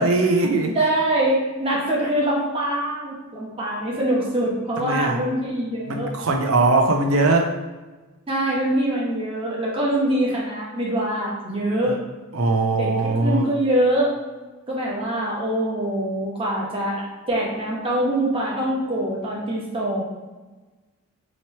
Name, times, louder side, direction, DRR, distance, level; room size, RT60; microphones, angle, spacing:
voice 1, 0.0-0.8 4.8-5.2 5.8-7.5 11.9-12.0 12.3-13.4, right 2 dB, 80° right, 3 dB, 0.6 m, -20 dB
voice 2, 0.7-6.1 8.3-12.0 12.8-14.1 14.7-20.0, right 1 dB, 25° right, -5 dB, 1.0 m, -24 dB
3.0 x 2.9 x 4.3 m, 1.2 s
head